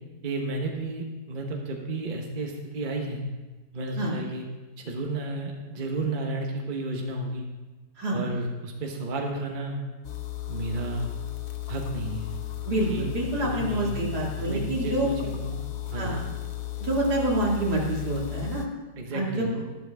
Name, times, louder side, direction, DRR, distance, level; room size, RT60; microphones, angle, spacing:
voice 1, 0.2-3.2 3.7-4.5 4.8-7.5 8.1-9.8 10.5-11.1 11.7-12.4 12.9-13.1 13.4-13.9 14.4-15.6 15.9-16.2 19.0-19.7, right 2 dB, 35° right, 1 dB, 1.2 m, -32 dB
sound 1, 10.0-18.7, left 16 dB, 60° left, 1.1 m, -35 dB
voice 2, 12.6-15.1 16.0-16.2 16.8-18.6 19.1-19.6, right 1 dB, 70° right, -3 dB, 2.6 m, -27 dB
12.0 x 11.5 x 3.5 m, 1.2 s
omnidirectional pair, 1.8 m